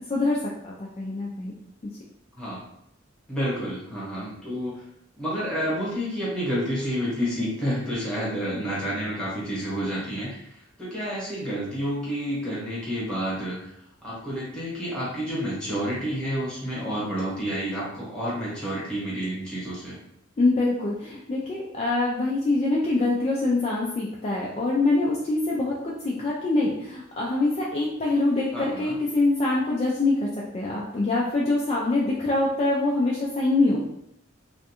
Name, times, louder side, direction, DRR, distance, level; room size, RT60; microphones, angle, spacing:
voice 1, 0.1-1.5 20.4-30.2 30.5-33.8, left 2 dB, 30° left, -5 dB, 0.3 m, -24 dB
voice 2, 2.3-2.6 3.3-4.8 5.2-13.7 14.0-20.0 28.5-29.0, equal, 5° left, -8 dB, 1.0 m, -29 dB
2.5 x 2.2 x 2.8 m, 0.77 s
head